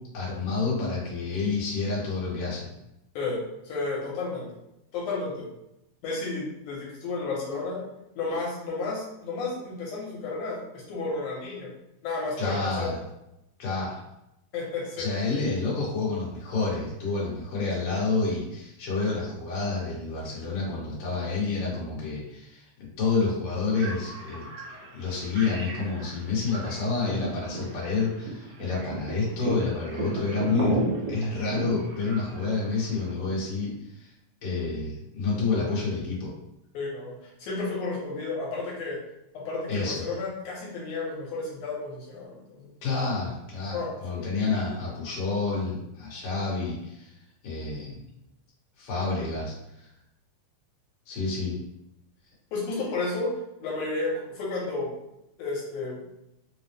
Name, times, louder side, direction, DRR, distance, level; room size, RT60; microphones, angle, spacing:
voice 1, 0.1-2.7 12.4-13.0 13.6-14.0 15.0-24.4 24.9-34.1 34.4-36.3 39.7-40.0 42.8-47.1 47.4-48.0 48.8-49.9 51.1-51.5, left 4 dB, 55° left, -6 dB, 1.8 m, -29 dB
voice 2, 3.2-4.5 4.9-5.5 6.0-7.8 8.2-11.7 12.0-13.0 14.5-15.1 36.7-39.0 39.3-42.7 43.7-44.2 52.5-53.3 53.6-54.9 55.4-56.0, left 3 dB, 80° left, -4 dB, 2.2 m, -32 dB
sound 1, 23.7-33.1, right 3 dB, 75° right, 1.3 m, -35 dB
4.8 x 2.0 x 3.3 m, 0.87 s
omnidirectional pair, 3.5 m